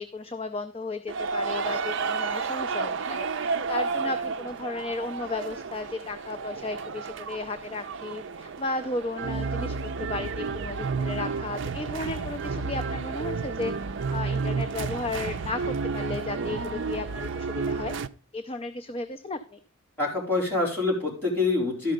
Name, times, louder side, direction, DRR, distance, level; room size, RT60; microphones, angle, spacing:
voice 1, 0.0-18.0 18.3-19.6, left 3 dB, 25° left, 8 dB, 0.5 m, -34 dB
sound 1, 1.1-18.1, right 4 dB, 55° right, 0.5 m, -31 dB
voice 2, 20.0-21.9, left 3 dB, 10° left, -4 dB, 4.0 m, -26 dB
12.5 x 5.6 x 5.1 m, 0.38 s
head